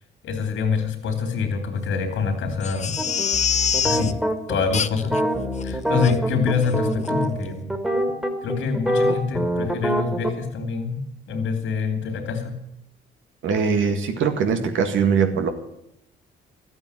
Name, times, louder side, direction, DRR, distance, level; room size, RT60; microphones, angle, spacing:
voice 1, 0.2-3.0 3.8-4.1 4.5-5.2 5.6-7.6 8.4-12.6, left 5 dB, 75° left, 5 dB, 3.2 m, -25 dB
Crying sobbing, 2.6-4.1 4.7-5.2 5.6-5.7 6.0-6.2 6.6-6.8 7.0-7.1, left 7 dB, 35° left, 0.5 m, -25 dB
sound 1, 3.0-10.3, equal, 5° right, 2.3 m, -25 dB
voice 2, 13.4-15.5, right 6 dB, 75° right, 7 dB, 2.0 m, -21 dB
13.5 x 8.8 x 9.8 m, 0.78 s
cardioid pair, 90°, 20 cm